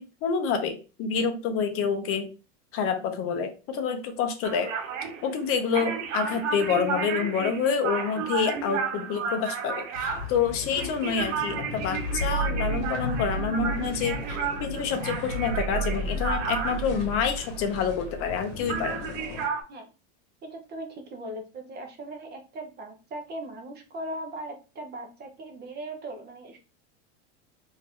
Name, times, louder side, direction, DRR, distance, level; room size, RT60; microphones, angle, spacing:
voice 1, 0.0-2.3 2.7-4.7 5.2-19.0, left 6 dB, 35° left, 6 dB, 0.6 m, -28 dB
sound 1, 4.4-18.4 18.7-19.6, right 6 dB, 70° right, 1.1 m, -33 dB
sound 2, 9.9-19.5, equal, 60° left, 1.0 m, -33 dB
voice 2, 20.4-26.6, right 1 dB, 25° right, 4 dB, 0.8 m, -39 dB
3.3 x 2.7 x 3.3 m, 0.32 s
supercardioid pair, 135°, 37 cm